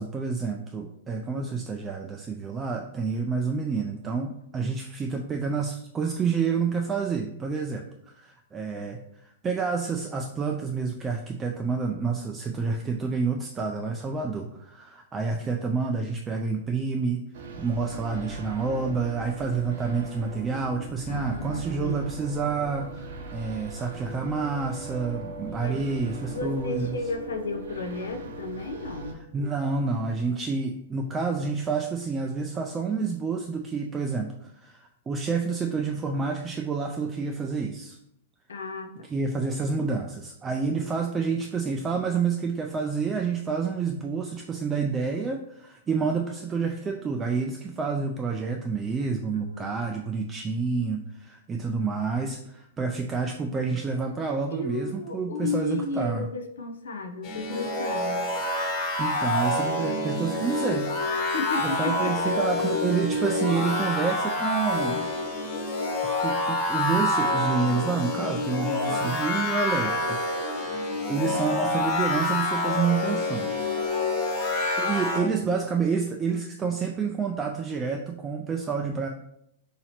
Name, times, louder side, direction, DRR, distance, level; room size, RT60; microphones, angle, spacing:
voice 1, 0.0-7.8 8.1-17.2 17.6-26.9 29.3-38.0 39.1-56.3 59.0-60.9 61.6-65.1 66.0-73.5 74.8-79.1, right 5 dB, 15° right, 2 dB, 0.3 m, -29 dB
sound 1, 17.3-29.1, right 3 dB, 75° right, 0.6 m, -39 dB
voice 2, 21.1-22.0 25.6-25.8 26.3-29.2 38.5-39.1 49.3-49.9 54.5-58.3 61.3-62.3 68.8-69.2, left 4 dB, 90° left, 6 dB, 0.5 m, -33 dB
sound 2, 57.2-75.2, left 2 dB, 40° left, 1.2 m, -27 dB
2.9 x 2.8 x 4.2 m, 0.77 s
hypercardioid pair, 130°, 0 cm